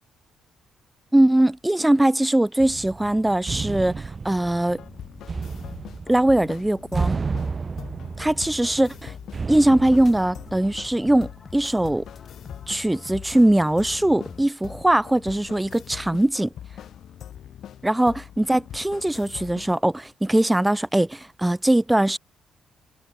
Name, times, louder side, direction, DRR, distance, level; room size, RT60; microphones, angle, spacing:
voice 1, 1.1-4.8 6.1-7.2 8.2-9.1 9.5-12.0 12.7-16.5 17.8-22.2, right 1 dB, 10° right, 0.4 m, -21 dB
sound 1, 2.6-11.3, right 4 dB, 35° right, 0.9 m, -32 dB
sound 2, 4.7-19.8, left 10 dB, 70° left, 0.8 m, -42 dB
sound 3, 9.5-14.5, left 5 dB, 35° left, 1.3 m, -45 dB
cardioid pair, 90°, 0 cm